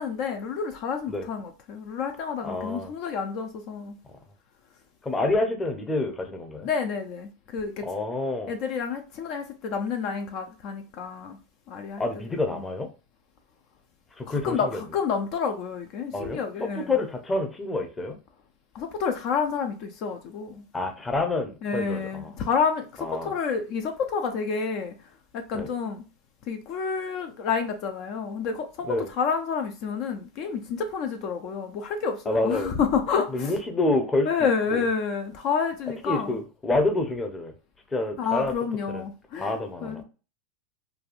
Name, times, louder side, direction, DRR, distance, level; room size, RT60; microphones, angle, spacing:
voice 1, 0.0-4.0 6.6-7.9 8.5-11.4 11.7-12.0 12.5-12.6 14.3-16.9 18.7-20.6 21.6-24.9 25.3-26.0 26.5-33.5 34.2-36.4 38.2-40.0, left 6 dB, 55° left, 0.5 m, -29 dB
voice 2, 2.4-2.9 5.0-6.7 7.8-8.5 12.0-12.9 14.2-14.7 16.1-18.2 20.7-22.3 23.0-23.3 25.5-25.7 28.8-29.1 32.3-32.8 33.3-34.9 36.1-37.5 37.9-38.5 38.9-39.1 39.4-40.0, left 2 dB, 15° left, 0.7 m, -28 dB
3.4 x 2.3 x 2.4 m
hypercardioid pair, 95°, 0 cm